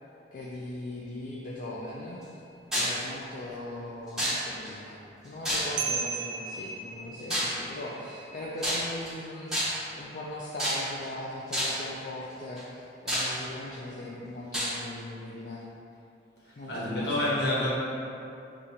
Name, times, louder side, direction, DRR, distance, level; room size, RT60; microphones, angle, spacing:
voice 1, 0.3-2.2 2.7-15.6 16.5-17.4, left 1 dB, 45° left, -5 dB, 0.4 m, -39 dB
sound 1, 1.8-2.4 5.8-11.5, right 5 dB, 65° right, 0.4 m, -39 dB
sound 2, 2.7-3.0 4.2-4.7 5.4-6.0 7.3-7.6 8.6-9.1 9.5-9.9 10.6-11.1 11.5-11.9 12.6-12.7 13.1-13.7 14.5-14.8, equal, 5° right, 1.2 m, -29 dB
voice 2, 16.7-17.7, left 1 dB, 65° left, -8 dB, 1.2 m, -28 dB
6.6 x 2.4 x 2.7 m, 2.7 s
head